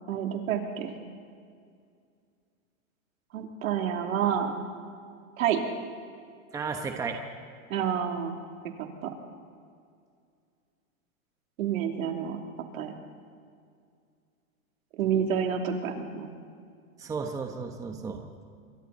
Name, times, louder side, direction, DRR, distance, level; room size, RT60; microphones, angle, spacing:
voice 1, 0.1-0.9 3.3-4.5 5.4-5.6 7.7-8.3 8.8-9.1 11.6-12.4 12.7-12.9 15.0-16.3, right 8 dB, 70° right, 3 dB, 3.2 m, -29 dB
voice 2, 6.5-7.2 17.0-18.5, right 5 dB, 10° right, 4 dB, 1.0 m, -34 dB
27.0 x 23.5 x 4.2 m, 2.2 s
supercardioid pair, 155°, 42 cm